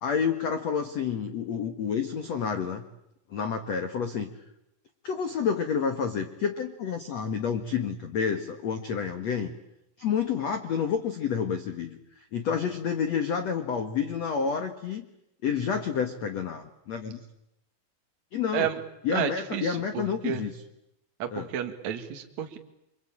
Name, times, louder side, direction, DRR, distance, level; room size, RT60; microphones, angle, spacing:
voice 1, 0.0-2.8 3.3-4.3 5.0-9.5 10.0-12.0 12.3-15.0 15.4-17.2 18.3-18.7 19.0-20.6 21.3-21.5, left 6 dB, 80° left, 7 dB, 1.5 m, -29 dB
voice 2, 19.1-20.4 21.2-22.6, right 10 dB, 50° right, 5 dB, 2.5 m, -31 dB
27.5 x 24.5 x 8.8 m, 0.85 s
omnidirectional pair, 5.7 m